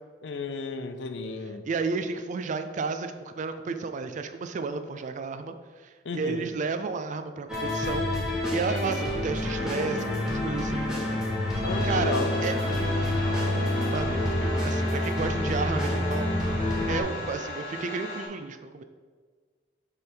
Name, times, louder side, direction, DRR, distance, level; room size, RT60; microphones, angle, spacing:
voice 1, 0.2-1.6 6.1-6.5 11.6-12.4, left 4 dB, 90° left, 9 dB, 0.5 m, -33 dB
voice 2, 1.7-5.6 5.8-11.2 11.8-12.1 12.4-13.2 13.5-14.4 14.6-16.3 16.9-18.8, right 4 dB, 45° right, 8 dB, 0.4 m, -32 dB
sound 1, 7.5-17.0, left 1 dB, 5° right, 1.2 m, -27 dB
sound 2, 11.7-18.3, left 2 dB, 35° left, 1.7 m, -38 dB
6.8 x 3.4 x 4.4 m, 1.5 s
head